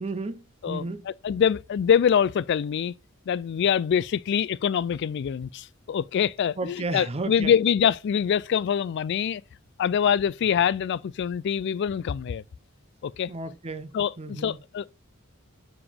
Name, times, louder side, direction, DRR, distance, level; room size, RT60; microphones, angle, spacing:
voice 1, 0.0-1.1 6.6-7.5 13.3-13.9 14.2-14.6, right 3 dB, 30° right, 0.6 m, -33 dB
voice 2, 0.6-2.9 3.3-9.4 9.8-12.4 13.0-13.3 13.9-14.9, left 8 dB, 55° left, 0.3 m, -24 dB
6.9 x 3.6 x 5.0 m
head